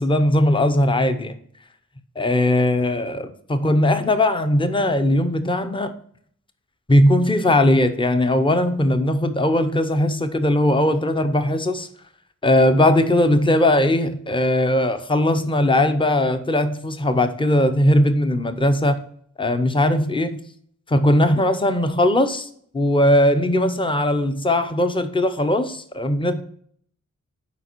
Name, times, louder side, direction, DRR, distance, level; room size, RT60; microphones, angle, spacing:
voice 1, 0.0-1.3 2.2-5.9 6.9-11.9 12.4-19.0 19.4-20.4 20.9-22.5 22.7-26.4, left 1 dB, 15° left, 8 dB, 0.7 m, -19 dB
6.9 x 4.9 x 4.5 m, 0.62 s
wide cardioid pair, 80°, 32 cm